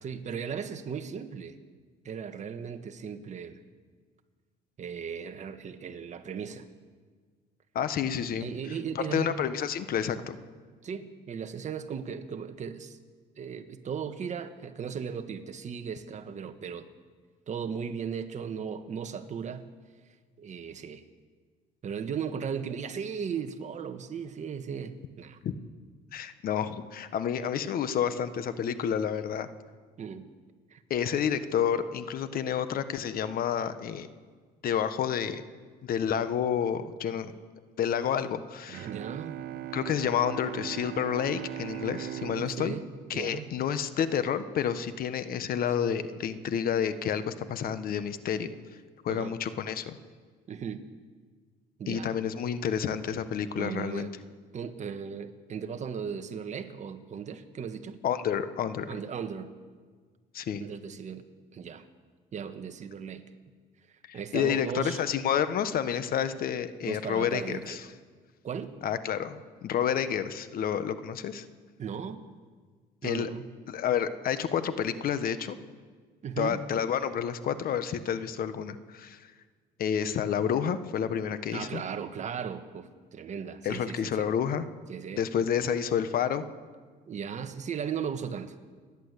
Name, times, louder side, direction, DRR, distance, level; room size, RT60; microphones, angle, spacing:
voice 1, 0.0-1.6 2.0-3.6 4.8-6.7 8.4-9.5 10.8-13.0 13.4-16.9 17.5-19.7 20.4-21.0 21.8-25.4 30.0-30.3 30.7-30.8 38.9-39.4 42.4-43.5 49.1-49.4 50.5-50.8 51.8-52.1 53.5-54.1 54.5-58.0 58.9-59.5 60.6-61.2 61.5-61.8 62.3-63.2 63.9-65.0 66.8-67.9 68.4-68.8 71.8-72.2 73.0-73.5 76.2-76.6 81.5-84.3 84.9-85.2 87.1-88.6, right 7 dB, 45° right, 8 dB, 1.5 m, -37 dB
voice 2, 7.7-8.5 8.9-10.4 25.4-25.5 26.1-29.5 30.9-34.1 34.6-35.4 35.8-37.3 37.8-38.9 39.7-42.8 43.1-48.5 49.0-50.0 51.9-54.1 58.0-59.0 60.3-60.6 64.1-67.8 68.8-71.4 73.0-73.3 73.7-75.6 76.4-79.3 79.8-81.8 83.6-84.6 85.2-86.4, left 8 dB, 60° left, 12 dB, 1.3 m, -29 dB
Bowed string instrument, 38.7-44.3, right 12 dB, 65° right, 0.7 m, -40 dB
29.0 x 11.0 x 8.3 m, 1.6 s
cardioid pair, 110°, 17 cm